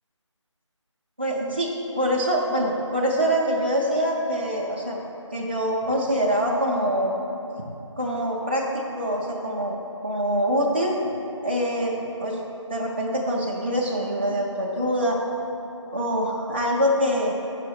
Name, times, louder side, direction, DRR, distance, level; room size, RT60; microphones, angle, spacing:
voice 1, 1.2-5.0 5.3-7.1 8.0-11.0 11.4-11.9 12.2-12.4 12.7-15.2 15.9-17.3, equal, 20° right, -4 dB, 0.5 m, -24 dB
6.6 x 5.6 x 4.2 m, 2.9 s
figure-of-eight pair, 165°, 16 cm